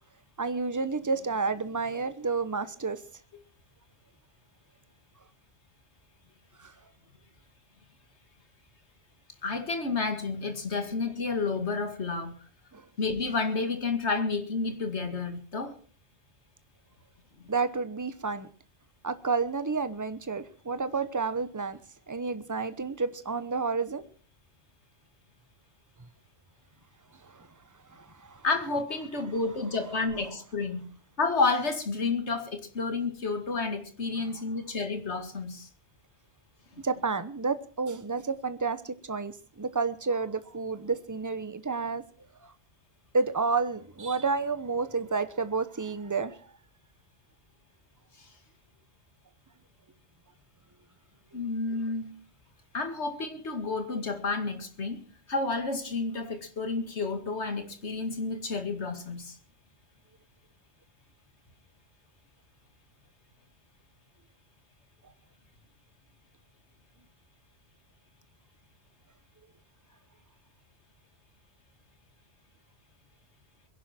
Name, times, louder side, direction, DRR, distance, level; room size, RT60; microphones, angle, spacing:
voice 1, 0.4-3.0 6.6-6.7 12.7-12.9 17.5-18.5 19.0-21.8 22.1-24.0 27.3-27.5 27.9-28.4 36.8-42.0 43.1-46.4, right 4 dB, 15° right, 12 dB, 1.0 m, -30 dB
voice 2, 9.4-12.3 13.0-15.8 17.4-17.5 28.4-30.9 31.2-35.7 48.2-48.3 51.3-52.1 52.7-55.0 55.3-59.4, left 4 dB, 80° left, 7 dB, 2.4 m, -30 dB
22.5 x 11.0 x 4.4 m, 0.42 s
omnidirectional pair, 1.1 m